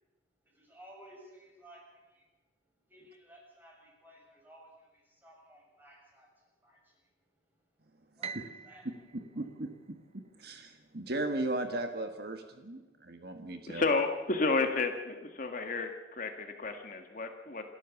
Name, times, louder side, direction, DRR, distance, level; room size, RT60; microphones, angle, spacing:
voice 1, 0.4-2.3 2.9-8.8 9.3-9.5, right 1 dB, 10° right, -2 dB, 6.9 m, -57 dB
Piano, 8.2-10.5, right 6 dB, 30° right, 0.7 m, -45 dB
voice 2, 9.3-13.8, right 2 dB, 55° right, 6 dB, 1.6 m, -37 dB
voice 3, 13.7-17.6, left 3 dB, 45° left, 5 dB, 1.7 m, -31 dB
28.0 x 13.0 x 7.1 m, 1.1 s
head